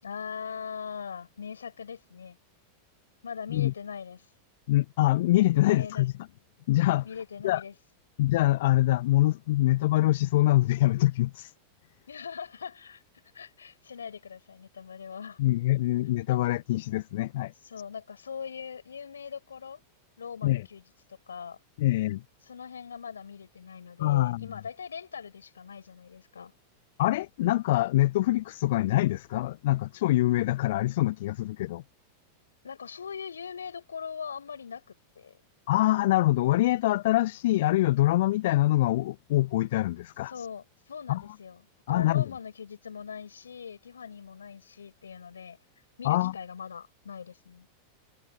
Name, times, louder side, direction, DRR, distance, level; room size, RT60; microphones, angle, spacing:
voice 1, 0.0-2.4 3.2-4.3 5.5-6.0 7.0-7.7 12.1-13.0 13.3-15.4 17.6-19.8 20.2-20.8 21.3-21.6 22.5-26.5 32.6-35.3 40.3-41.6 41.9-45.6 46.0-47.7, left 6 dB, 70° left, 6.8 m, -41 dB
voice 2, 4.7-6.1 6.7-7.1 7.4-7.6 8.2-11.5 15.4-17.5 20.4-20.7 21.8-22.2 24.0-24.5 27.0-31.8 35.7-40.5 41.1-41.2 41.9-42.3 46.0-46.3, left 16 dB, 55° left, 1.0 m, -24 dB
figure-of-eight pair, 90°, 0 cm